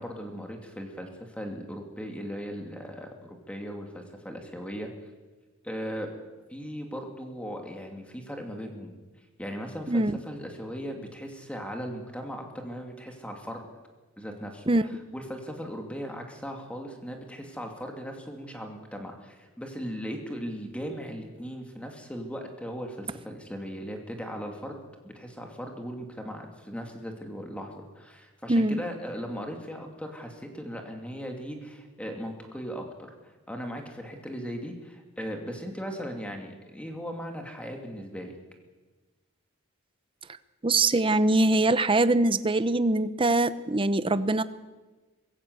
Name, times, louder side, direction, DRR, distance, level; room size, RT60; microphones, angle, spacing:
voice 1, 0.0-4.9 5.6-6.1 6.5-9.0 9.4-13.7 14.2-14.6 15.1-32.8 33.2-38.3, equal, 5° left, 2 dB, 2.7 m, -38 dB
voice 2, 28.5-28.8 40.6-44.4, right 2 dB, 25° right, 13 dB, 0.8 m, -23 dB
24.0 x 16.5 x 8.2 m, 1.3 s
head